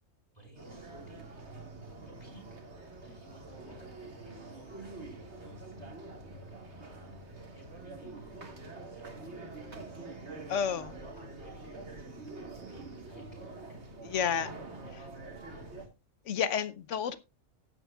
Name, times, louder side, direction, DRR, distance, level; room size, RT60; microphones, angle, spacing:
voice 1, 0.3-2.6 3.0-5.9 6.8-7.2 7.5-8.5 8.9-10.2 11.0-12.2 12.5-13.8 14.3-15.9, right 1 dB, 30° left, 5.5 m, -57 dB
sound 1, 0.6-15.9, right 2 dB, 55° right, 2.3 m, -46 dB
voice 2, 10.5-10.9 14.1-14.5 16.3-17.2, left 7 dB, 70° left, 1.1 m, -30 dB
17.5 x 9.4 x 2.3 m
omnidirectional pair, 1.4 m